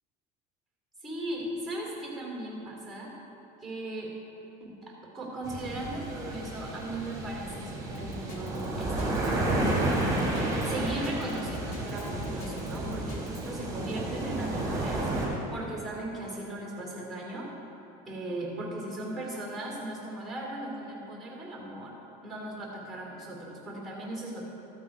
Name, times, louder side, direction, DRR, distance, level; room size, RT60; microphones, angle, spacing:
voice 1, 1.0-3.1 3.6-4.2 4.6-9.9 10.6-15.0 15.5-17.5 18.0-21.9 22.2-24.4, right 1 dB, ahead, -2 dB, 2.6 m, -37 dB
sound 1, 5.4-15.3, right 2 dB, 15° right, 2.6 m, -31 dB
Drum kit, 7.9-13.5, left 1 dB, 70° left, 2.2 m, -41 dB
13.5 x 8.1 x 4.8 m, 2.9 s
cardioid pair, 155°, 19 cm